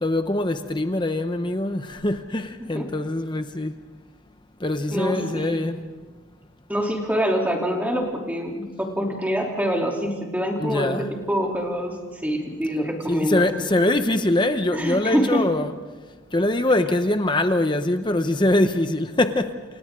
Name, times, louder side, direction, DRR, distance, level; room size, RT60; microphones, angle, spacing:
voice 1, 0.0-3.7 4.6-5.8 10.6-11.1 13.1-15.7 16.3-19.5, left 1 dB, 20° left, 0.8 m, -23 dB
voice 2, 4.9-5.7 6.7-13.5 14.0-14.1 14.7-15.5, equal, 10° right, 3.2 m, -25 dB
29.0 x 29.0 x 3.8 m
head